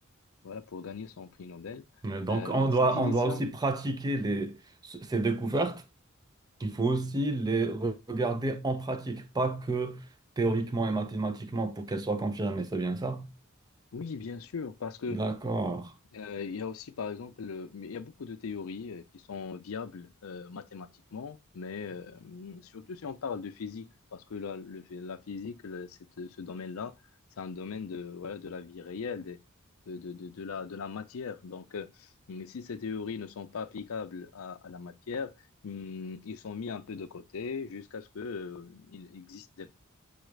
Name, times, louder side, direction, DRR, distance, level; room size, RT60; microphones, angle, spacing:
voice 1, 0.4-1.8 2.3-3.4 13.9-15.2 16.1-23.9 24.1-26.9 27.4-29.4 29.9-35.3 35.6-39.7, left 5 dB, 75° left, 0.5 m, -39 dB
voice 2, 2.0-5.8 6.6-10.0 10.4-13.3 15.1-15.9, right 2 dB, 20° right, 0.5 m, -29 dB
7.0 x 2.4 x 3.1 m
head